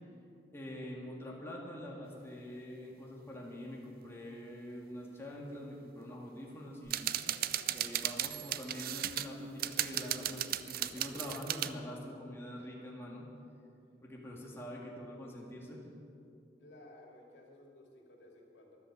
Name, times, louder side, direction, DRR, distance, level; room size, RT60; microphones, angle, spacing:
voice 1, 0.5-7.1 7.7-13.3 14.0-15.8, equal, 15° left, -3 dB, 2.0 m, -45 dB
sound 1, 6.9-9.3 9.6-11.7, right 12 dB, 55° right, 0.5 m, -36 dB
voice 2, 7.1-7.9 16.6-18.8, left 1 dB, 90° left, 0 dB, 2.5 m, -57 dB
13.0 x 11.5 x 6.7 m, 2.7 s
head